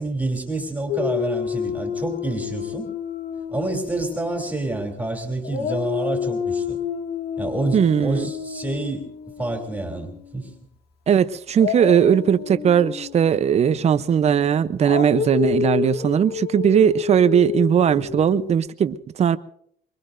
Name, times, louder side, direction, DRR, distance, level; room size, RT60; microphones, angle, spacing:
voice 1, 0.0-2.9 3.5-6.8 7.4-9.1 9.4-10.5 17.9-18.1, right 2 dB, 10° right, 3.0 m, -28 dB
Dog, 0.9-5.0 5.4-10.4 11.5-18.5, left 7 dB, 70° left, 2.0 m, -29 dB
voice 2, 7.7-8.3 11.1-19.4, right 8 dB, 40° right, 0.7 m, -19 dB
24.0 x 23.0 x 2.6 m
cardioid pair, 110°, 17 cm